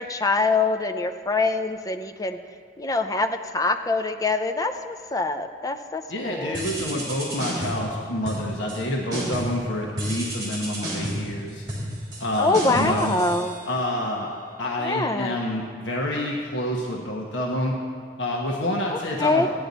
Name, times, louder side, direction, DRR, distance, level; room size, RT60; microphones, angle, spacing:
voice 1, 0.0-2.4 2.8-6.6 12.4-13.5 14.8-15.4 18.9-19.5, left 3 dB, 20° left, 7 dB, 0.5 m, -24 dB
voice 2, 6.1-11.6 12.2-13.1 13.7-14.3 14.6-17.7 18.2-19.5, left 1 dB, 90° left, -1 dB, 1.2 m, -28 dB
sound 1, 6.5-7.9 8.2-8.8 9.1-9.6 10.0-14.0, right 1 dB, 25° right, 3.5 m, -32 dB
15.5 x 10.0 x 4.0 m, 2.1 s
head